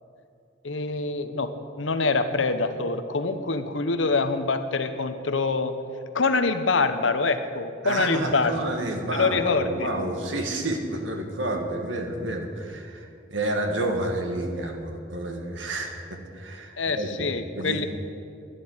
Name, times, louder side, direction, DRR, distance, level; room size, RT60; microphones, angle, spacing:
voice 1, 0.6-1.5 1.8-5.7 6.1-8.6 9.1-9.9 16.8-17.9, left 3 dB, 90° left, 8 dB, 1.0 m, -25 dB
voice 2, 7.8-17.1 17.5-17.9, right 1 dB, 85° right, 3 dB, 2.0 m, -30 dB
11.5 x 10.5 x 9.7 m, 2.5 s
head